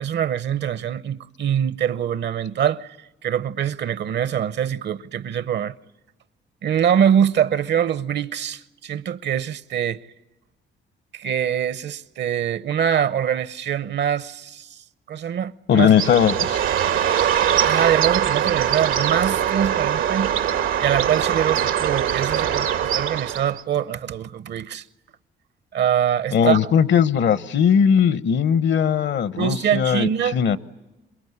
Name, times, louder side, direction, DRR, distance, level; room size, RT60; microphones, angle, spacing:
voice 1, 0.0-3.0 3.2-5.8 6.6-10.0 11.1-14.8 15.1-15.9 17.6-20.3 20.8-24.8 25.7-26.7 29.4-30.4, right 9 dB, 60° right, 0.8 m, -24 dB
voice 2, 15.7-16.6 26.3-30.6, left 7 dB, 65° left, 1.0 m, -19 dB
Bird, 15.9-23.6, right 10 dB, 90° right, 1.5 m, -22 dB
27.5 x 22.0 x 9.7 m
cardioid pair, 90°, 20 cm